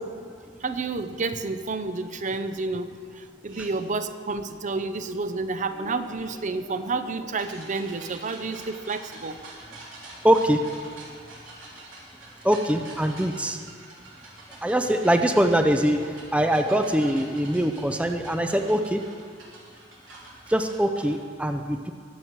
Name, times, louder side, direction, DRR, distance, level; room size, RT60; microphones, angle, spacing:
voice 1, 0.6-9.4, right 3 dB, 40° right, 10 dB, 0.7 m, -30 dB
sound 1, 3.5-3.7 5.7-21.1, right 2 dB, 90° right, 3.4 m, -46 dB
voice 2, 10.2-10.6 12.4-13.6 14.6-19.0 20.5-21.9, right 1 dB, 5° right, 6 dB, 0.5 m, -23 dB
21.5 x 7.5 x 4.7 m, 2.1 s
head